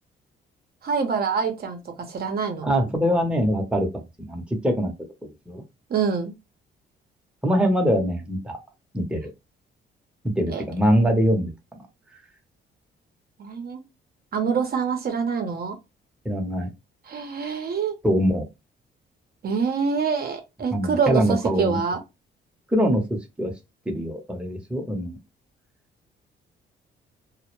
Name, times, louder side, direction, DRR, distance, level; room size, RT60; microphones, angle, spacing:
voice 1, 0.8-1.8 2.1-2.7 5.9-6.3 10.5-10.6 13.4-13.8 14.3-15.8 17.1-18.0 19.4-22.0, right 6 dB, 50° right, 0.6 m, -25 dB
voice 2, 2.6-3.9 4.2-4.9 5.2-5.6 7.4-8.6 8.9-9.3 10.4-11.8 16.2-16.7 17.4-17.5 18.0-18.5 20.7-21.8 22.7-23.0 23.4-23.5 23.9-25.2, equal, 5° right, 0.7 m, -23 dB
2.1 x 2.0 x 3.0 m
cardioid pair, 90°, 20 cm